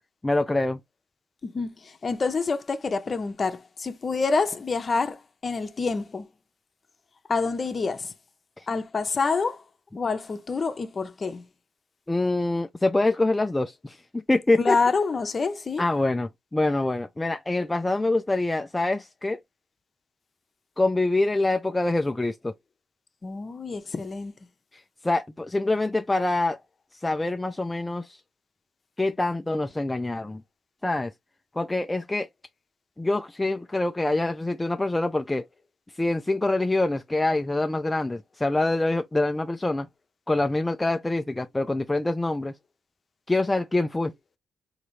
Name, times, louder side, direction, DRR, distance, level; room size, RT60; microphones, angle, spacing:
voice 1, 0.2-0.8 8.6-8.7 12.1-14.8 15.8-19.4 20.8-22.5 25.0-26.6 27.0-28.2 29.0-30.4 30.8-31.1 31.6-32.3 33.0-35.4 36.0-39.9 40.3-42.5 43.3-44.1, left 2 dB, 15° left, 0.3 m, -25 dB
voice 2, 1.4-6.3 7.3-8.1 8.7-9.6 10.0-11.4 14.6-15.9 23.2-24.3, left 4 dB, 35° left, 0.7 m, -27 dB
4.0 x 2.8 x 3.1 m
cardioid pair, 90°, 0 cm